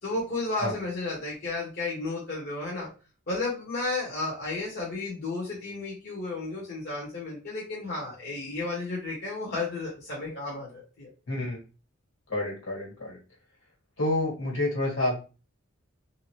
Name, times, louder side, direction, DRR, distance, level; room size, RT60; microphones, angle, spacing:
voice 1, 0.0-2.9 3.3-11.1, left 3 dB, 50° left, -5 dB, 1.1 m, -33 dB
voice 2, 11.3-11.6 12.3-13.2 14.0-15.1, left 2 dB, 75° left, -3 dB, 1.7 m, -28 dB
3.4 x 2.8 x 3.2 m, 0.34 s
head